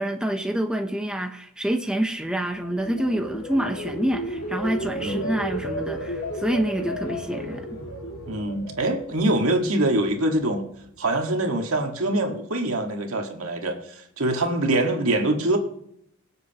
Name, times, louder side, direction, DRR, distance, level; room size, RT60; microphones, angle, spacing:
voice 1, 0.0-7.7, right 1 dB, 5° right, 4 dB, 0.8 m, -27 dB
sound 1, 2.4-9.6 10.0-10.3, equal, 85° left, 2.3 m, -33 dB
voice 2, 5.0-5.3 8.3-10.6 11.0-15.6, right 1 dB, 80° right, 3 dB, 1.8 m, -24 dB
23.5 x 8.0 x 3.0 m, 0.73 s
head